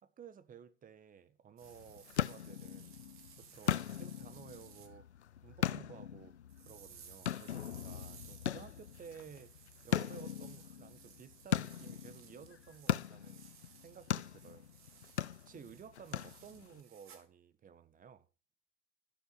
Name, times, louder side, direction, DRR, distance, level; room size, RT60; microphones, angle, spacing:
voice 1, 0.0-2.9 3.4-5.1 5.4-14.7 15.4-18.3, right 7 dB, 25° right, 1.5 m, -55 dB
sound 1, 1.6-16.8, left 10 dB, 80° left, 0.7 m, -40 dB
sound 2, 1.6-4.9 6.5-17.3, right 7 dB, 40° right, 3.6 m, -59 dB
12.5 x 12.5 x 5.7 m
hypercardioid pair, 90°, 33 cm